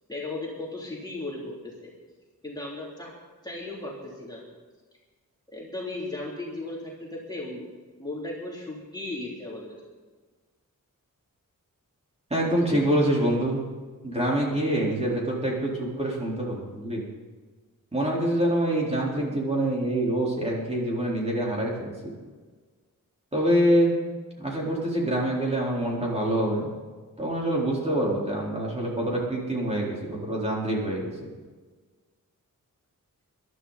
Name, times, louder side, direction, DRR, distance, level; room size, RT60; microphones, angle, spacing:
voice 1, 0.1-1.9 2.4-3.1 3.4-4.4 5.5-7.7 8.0-9.8, left 2 dB, 10° left, -5 dB, 3.2 m, -36 dB
voice 2, 12.3-13.6 14.0-17.1 17.9-22.1 23.3-24.0 24.4-26.7 27.2-31.1, right 1 dB, 20° right, -4 dB, 4.2 m, -25 dB
22.0 x 12.5 x 4.2 m, 1.4 s
wide cardioid pair, 125°, 34 cm